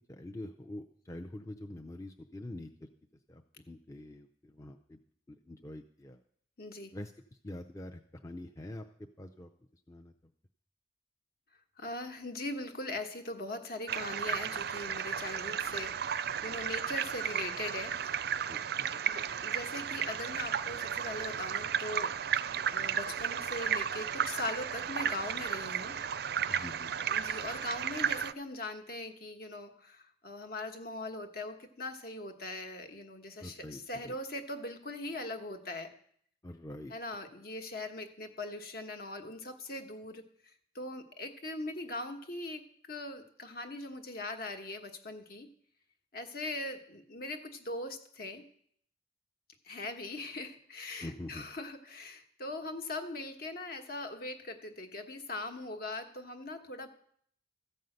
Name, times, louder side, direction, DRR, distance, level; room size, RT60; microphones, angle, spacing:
voice 1, 0.1-2.9 3.3-3.4 3.7-5.0 5.3-6.2 6.9-7.1 7.4-8.9 9.2-9.5 9.9-10.1 18.5-19.0 26.5-26.9 33.4-34.2 36.4-36.9 51.0-51.5, left 1 dB, 15° left, 4 dB, 0.5 m, -45 dB
voice 2, 6.6-6.9 11.8-18.3 19.0-22.1 22.7-26.0 27.1-35.9 36.9-40.3 40.7-45.5 46.1-48.4 49.6-56.9, left 2 dB, 55° left, 6 dB, 1.2 m, -40 dB
sound 1, 13.9-28.3, right 8 dB, 60° right, 0.4 m, -34 dB
14.0 x 5.5 x 7.8 m, 0.65 s
head